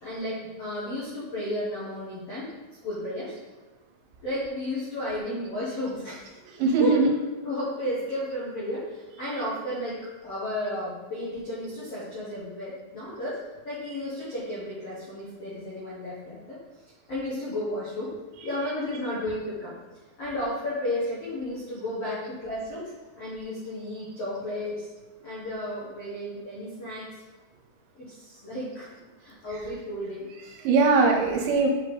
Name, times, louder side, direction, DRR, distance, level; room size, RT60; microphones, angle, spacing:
voice 1, 0.0-2.5 2.8-3.4 4.2-6.4 6.8-6.9 7.4-16.6 17.1-18.1 18.4-19.7 20.2-22.9 23.2-24.9 25.2-27.2 27.9-28.9 29.2-30.5, left 1 dB, 90° left, -8 dB, 1.3 m, -33 dB
voice 2, 6.4-7.1 18.4-18.7 29.5-29.7 30.4-31.7, right 4 dB, 75° right, 1 dB, 2.9 m, -22 dB
7.7 x 5.0 x 3.9 m, 1.2 s
omnidirectional pair, 5.5 m